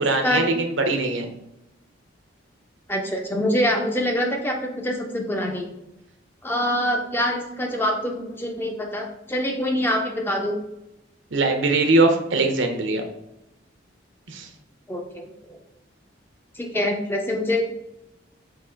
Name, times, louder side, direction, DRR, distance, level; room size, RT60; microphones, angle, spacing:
voice 1, 0.0-1.3 11.3-13.0 14.3-14.5, right 2 dB, 75° right, 5 dB, 0.7 m, -21 dB
voice 2, 2.9-5.7 6.4-10.6 14.9-15.6 16.5-17.6, left 1 dB, 10° left, 2 dB, 0.5 m, -25 dB
3.6 x 2.9 x 4.4 m, 0.88 s
head